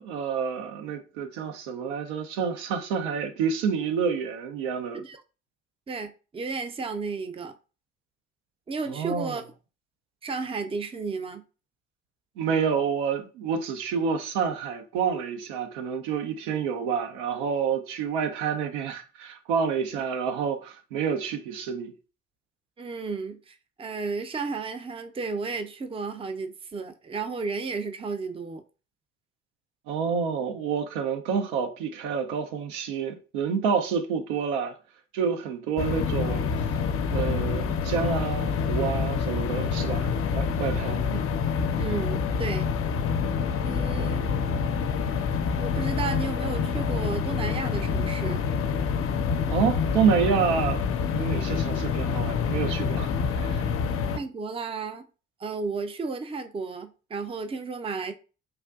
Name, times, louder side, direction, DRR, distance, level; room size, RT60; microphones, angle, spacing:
voice 1, 0.0-5.0 8.9-9.4 12.4-21.9 29.9-34.8 35.1-36.5 37.1-41.0 43.9-44.2 49.5-53.7, right 6 dB, 80° right, 0.5 m, -28 dB
voice 2, 5.9-7.6 8.7-9.4 10.2-11.4 22.8-28.6 41.1-41.2 41.8-42.7 43.6-44.3 45.6-48.4 54.1-55.1 55.4-58.1, right 4 dB, 15° right, 0.4 m, -33 dB
sound 1, 35.8-54.2, left 6 dB, 40° left, 0.4 m, -27 dB
3.4 x 2.4 x 2.3 m
hypercardioid pair, 40°, 34 cm